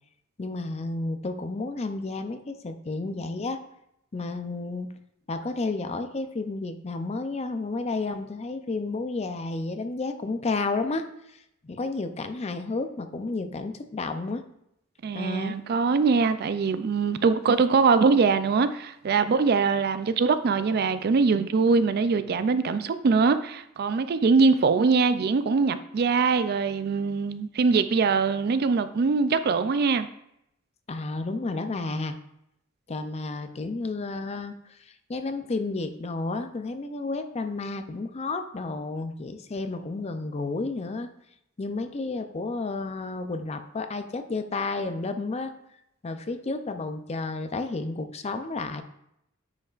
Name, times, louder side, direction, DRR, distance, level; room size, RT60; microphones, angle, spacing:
voice 1, 0.4-3.6 4.1-4.9 5.3-11.4 11.6-14.4 15.1-15.6 30.9-32.2 32.9-34.6 35.1-41.1 41.6-45.5 46.0-48.8, left 3 dB, 30° left, 0.5 m, -31 dB
voice 2, 15.0-30.1, right 4 dB, 50° right, 0.4 m, -22 dB
9.2 x 5.4 x 2.5 m
head